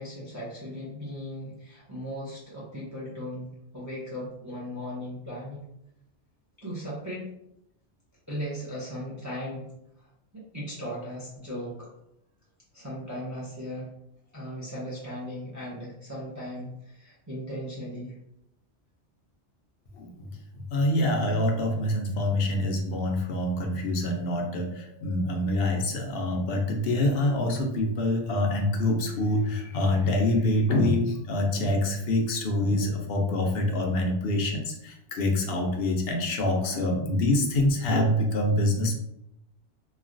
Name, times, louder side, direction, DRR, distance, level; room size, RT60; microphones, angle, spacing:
voice 1, 0.0-5.6 6.6-7.2 8.3-9.6 10.3-11.9 12.7-13.9 14.3-18.1, equal, 20° right, -6 dB, 0.6 m, -37 dB
voice 2, 20.0-20.3 20.7-39.0, left 1 dB, 60° left, 1 dB, 0.8 m, -26 dB
3.1 x 2.2 x 2.5 m, 0.80 s
omnidirectional pair, 1.2 m